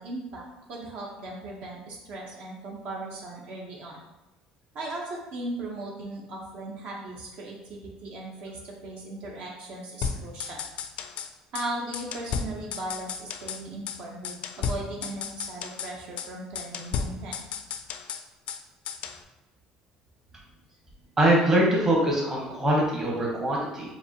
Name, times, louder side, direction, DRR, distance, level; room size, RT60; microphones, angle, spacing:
voice 1, 0.0-4.0 4.7-10.6 11.5-17.4, right 2 dB, 60° right, -2 dB, 0.9 m, -37 dB
sound 1, 10.0-11.3 11.6-11.7 11.9-13.6 13.9-14.0 14.2-15.9 16.2-16.3 16.6-18.6 18.9-19.2, left 6 dB, 60° left, 0.3 m, -34 dB
voice 2, 21.2-23.9, right 1 dB, 20° right, -3 dB, 1.1 m, -23 dB
5.1 x 2.6 x 2.9 m, 0.98 s
cardioid pair, 125°, 2 cm